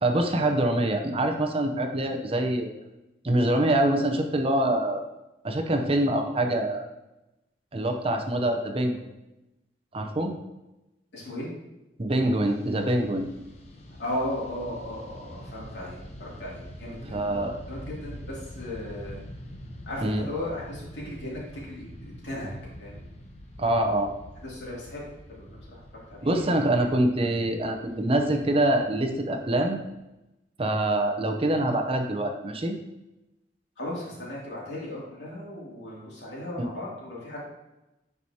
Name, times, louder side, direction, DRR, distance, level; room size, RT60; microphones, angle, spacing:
voice 1, 0.0-2.7 3.2-5.0 5.4-6.8 7.7-9.1 9.9-10.3 12.0-13.3 17.0-17.6 20.0-20.2 23.6-24.1 26.2-29.8 30.6-32.8 36.6-36.7, right 1 dB, 35° right, 4 dB, 0.7 m, -25 dB
voice 2, 11.1-11.5 14.0-17.4 17.7-19.2 19.9-22.5 22.8-23.1 24.4-25.8 26.1-26.7 33.8-37.4, left 1 dB, 80° left, -5 dB, 2.6 m, -36 dB
Fixed-wing aircraft airplane, 12.4-29.8, equal, 40° left, 0.9 m, -45 dB
9.7 x 4.8 x 2.8 m, 0.96 s
head